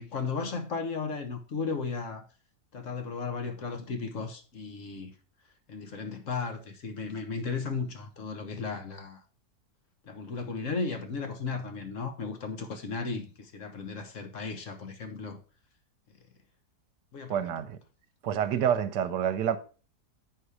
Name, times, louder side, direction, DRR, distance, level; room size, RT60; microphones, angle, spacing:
voice 1, 0.0-2.2 2.7-5.1 5.7-9.2 10.1-15.4 17.1-17.5, left 4 dB, 50° left, 1.5 m, -35 dB
voice 2, 17.3-17.8 18.2-19.6, right 9 dB, 80° right, 1.4 m, -28 dB
8.5 x 5.6 x 4.8 m
omnidirectional pair, 1.8 m